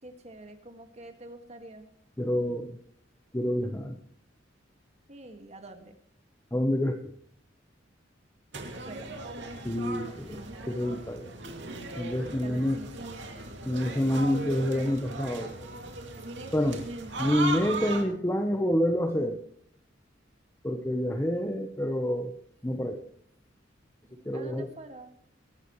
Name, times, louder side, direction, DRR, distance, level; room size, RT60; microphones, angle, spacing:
voice 1, 0.0-1.9 5.1-5.9 8.6-9.1 10.1-10.9 12.3-13.1 16.9-17.3 24.0-25.2, right 2 dB, 35° right, 6 dB, 1.9 m, -47 dB
voice 2, 2.2-2.8 3.3-3.9 6.5-7.0 9.6-10.4 10.7-11.3 11.9-12.8 13.6-15.7 16.5-16.9 17.2-19.4 20.6-22.4 22.6-23.0 24.2-24.7, equal, 15° left, 4 dB, 1.0 m, -28 dB
sound 1, 8.5-18.0, right 2 dB, 70° right, 2.5 m, -38 dB
22.0 x 12.0 x 3.2 m, 0.67 s
head